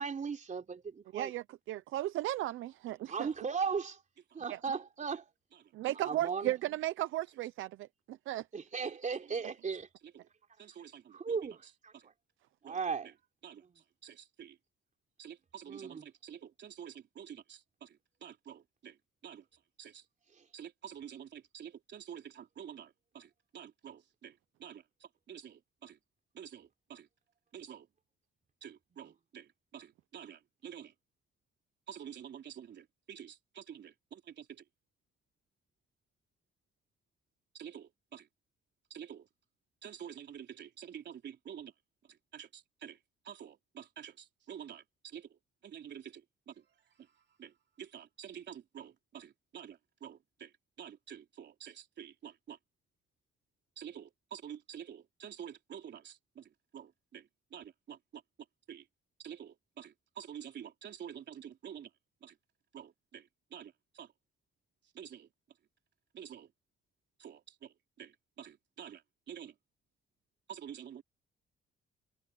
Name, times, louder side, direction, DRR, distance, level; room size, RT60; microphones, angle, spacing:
voice 1, 0.0-1.3 3.1-4.0 4.4-5.2 6.0-6.5 8.5-9.9 11.1-12.1 12.6-13.1 13.6-13.8 15.7-16.1 20.3-20.5, right 5 dB, 40° right, 3.4 m, -37 dB
voice 2, 1.1-3.1 5.8-8.4, right 14 dB, 85° right, 0.7 m, -35 dB
voice 3, 8.8-9.2 10.0-10.3 10.6-12.0 12.6-12.8 13.4-13.6 14.0-14.6 15.2-19.0 19.2-19.4 19.8-20.0 20.5-26.0 26.3-27.1 27.5-27.9 28.6-30.9 31.9-34.6 37.5-38.3 38.9-39.3 39.8-41.7 42.3-43.0 43.2-45.3 45.6-46.5 47.4-50.5 50.8-52.6 53.8-58.2 58.7-58.8 59.2-61.9 62.2-62.3 62.7-64.1 65.0-65.3 66.1-66.5 67.2-69.0 69.3-69.5 70.5-71.0, right 9 dB, 60° right, 3.7 m, -49 dB
open air
cardioid pair, 90°, 20 cm